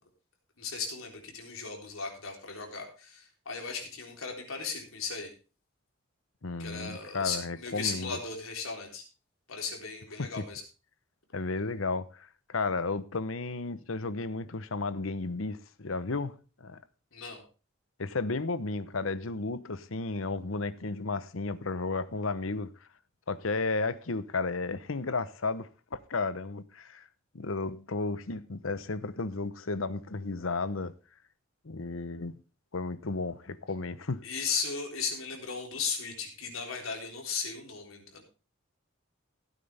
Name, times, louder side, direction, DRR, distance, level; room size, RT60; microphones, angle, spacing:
voice 1, 0.6-5.3 6.6-9.0 9.5-10.6 17.1-17.4 34.2-38.2, left 5 dB, 90° left, 3.8 m, -36 dB
voice 2, 6.4-8.2 10.2-10.5 11.3-16.3 16.6-16.8 18.0-22.7 23.3-27.1 27.3-30.9 31.6-32.4 32.7-34.2, left 3 dB, 70° left, 0.9 m, -33 dB
16.0 x 9.3 x 3.5 m
head